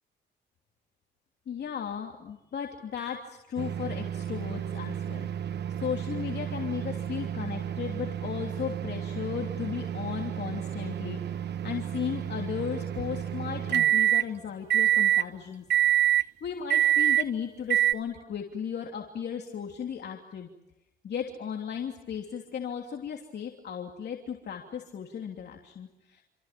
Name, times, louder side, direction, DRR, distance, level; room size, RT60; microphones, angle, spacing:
voice 1, 1.5-5.3 5.8-11.2 11.6-15.6 16.2-20.5 21.0-26.2, left 8 dB, 55° left, 2 dB, 3.1 m, -35 dB
sound 1, 3.6-14.3 14.7-15.3 15.7-16.3 16.7-17.3 17.7-17.9, right 11 dB, 60° right, 1.3 m, -28 dB
28.5 x 26.0 x 7.6 m, 0.90 s
cardioid pair, 90°, 20 cm